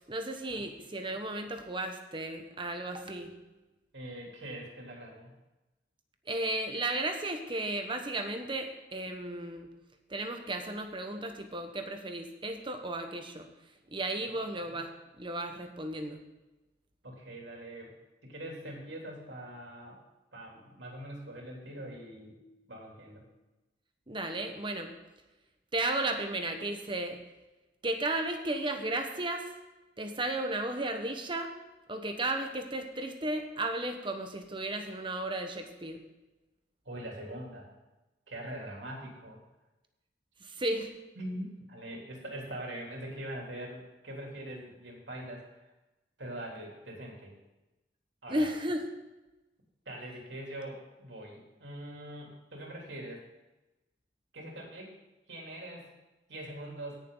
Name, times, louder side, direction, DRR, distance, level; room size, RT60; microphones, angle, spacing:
voice 1, 0.1-3.5 6.3-9.7 10.1-13.5 13.9-14.9 15.2-16.2 24.1-24.9 25.7-27.2 27.8-29.4 30.0-31.5 31.9-36.0 40.4-40.9 48.3-48.8, right 2 dB, 30° right, 5 dB, 1.2 m, -34 dB
voice 2, 3.9-5.3 17.0-17.9 18.2-20.0 20.3-22.4 22.7-23.2 36.8-37.7 38.3-39.4 41.1-45.6 46.2-47.3 48.2-48.5 49.8-53.2 54.3-54.9 55.3-55.9 56.3-57.0, right 1 dB, 85° right, -1 dB, 3.4 m, -43 dB
17.0 x 7.2 x 3.9 m, 1.0 s
head